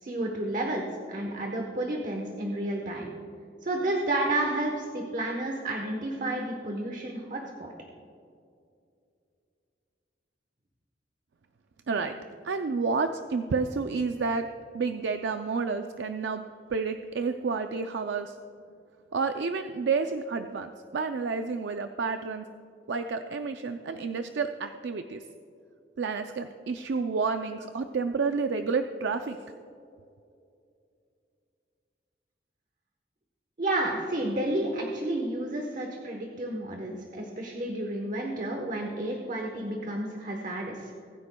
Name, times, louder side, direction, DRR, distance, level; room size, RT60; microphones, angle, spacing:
voice 1, 0.0-3.1 3.6-7.7 33.6-40.9, right 1 dB, 45° right, 1 dB, 1.1 m, -31 dB
voice 2, 12.4-14.5 14.7-16.4 16.7-18.4 19.1-22.5 22.9-25.2 26.0-29.4, right 4 dB, 75° right, 7 dB, 0.4 m, -30 dB
21.5 x 9.4 x 2.3 m, 2.5 s
head